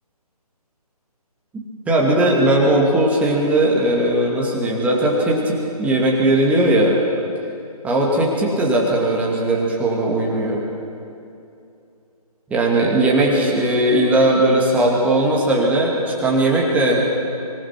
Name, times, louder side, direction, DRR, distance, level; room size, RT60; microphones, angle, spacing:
voice 1, 1.9-7.0 7.8-10.6 12.5-17.0, right 1 dB, 5° right, -2 dB, 2.3 m, -18 dB
25.0 x 19.5 x 6.0 m, 2.6 s
figure-of-eight pair, 150°, 20 cm